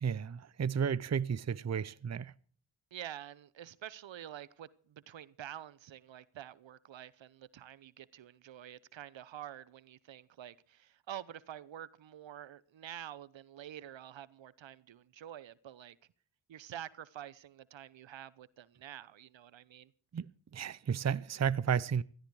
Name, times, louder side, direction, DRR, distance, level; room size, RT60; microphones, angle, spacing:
voice 1, 0.0-2.3 20.1-20.3 20.5-22.0, right 7 dB, 35° right, 0.7 m, -32 dB
voice 2, 2.9-16.0 16.5-19.9, right 11 dB, 75° right, 0.9 m, -48 dB
16.5 x 13.0 x 4.8 m
cardioid pair, 50°, 46 cm